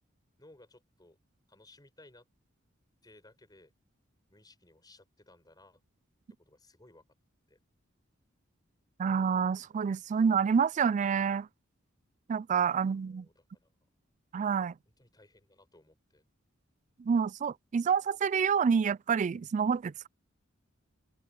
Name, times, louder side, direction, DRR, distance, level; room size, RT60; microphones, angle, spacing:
voice 1, 0.4-1.2 1.5-2.2 3.0-3.7 4.3-5.8 6.4-7.0 7.5-7.6 12.8-13.7 15.0-16.2, left 2 dB, 20° left, 6.5 m, -59 dB
voice 2, 9.0-11.5 12.3-13.3 14.3-14.7 17.0-20.1, right 6 dB, 40° right, 0.3 m, -28 dB
open air
head